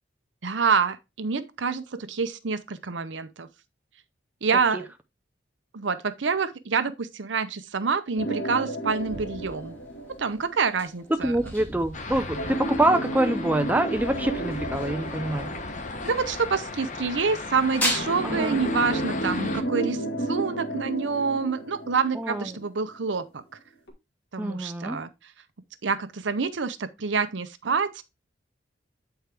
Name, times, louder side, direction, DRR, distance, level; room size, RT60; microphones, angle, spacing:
voice 1, 0.4-3.5 4.4-4.9 5.7-9.7 10.2-11.5 16.0-20.0 20.3-23.4 24.3-25.1 25.8-28.0, right 5 dB, 80° right, 0.7 m, -27 dB
sound 1, 8.2-10.8 12.3-16.7 17.9-22.8 23.2-23.3 23.9-24.0, right 1 dB, 70° left, 1.8 m, -32 dB
sound 2, 8.9-16.7 16.9-18.0, equal, 10° left, 2.1 m, -36 dB
voice 2, 11.1-15.5 18.2-18.6 22.1-22.5 24.4-25.0, right 1 dB, 10° right, 0.5 m, -25 dB
sound 3, 11.9-19.6, left 3 dB, 40° left, 0.9 m, -36 dB
8.3 x 4.5 x 3.4 m
head